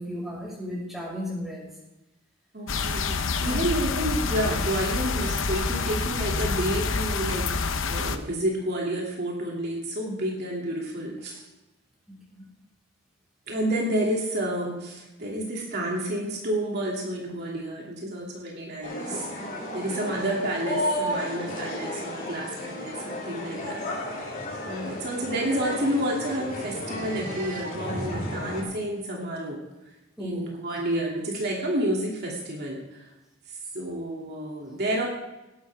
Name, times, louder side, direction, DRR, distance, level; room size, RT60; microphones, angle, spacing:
voice 1, 0.0-1.7 3.4-3.7 12.1-12.5 30.2-30.4, equal, ahead, -4 dB, 5.8 m, -35 dB
voice 2, 2.5-7.5 7.9-11.5 13.5-19.4 19.7-24.3 24.6-29.6 30.2-33.0 33.5-35.1, right 1 dB, 55° right, -3 dB, 2.6 m, -30 dB
sound 1, 2.7-8.2, left 4 dB, 70° left, 0.9 m, -27 dB
sound 2, 18.8-28.6, left 1 dB, 45° left, 4.2 m, -33 dB
18.0 x 12.0 x 3.5 m, 1.0 s
head